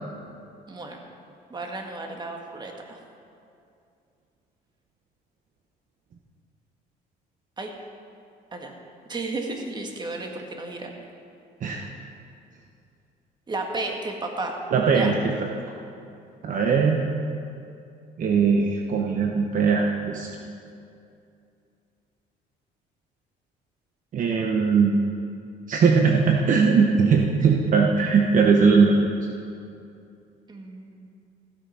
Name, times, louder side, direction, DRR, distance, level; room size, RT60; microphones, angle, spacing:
voice 1, 0.7-1.0 1.5-3.0 7.6-7.7 8.5-8.7 9.1-10.9 13.5-14.6 14.9-15.1 30.5-31.1, right 2 dB, 25° right, 2 dB, 1.8 m, -33 dB
voice 2, 14.7-15.3 16.4-17.1 18.2-20.3 24.1-25.0 25.7-29.0, right 5 dB, 50° right, 1 dB, 1.1 m, -20 dB
15.0 x 8.5 x 5.7 m, 2.5 s
cardioid pair, 110°, 17 cm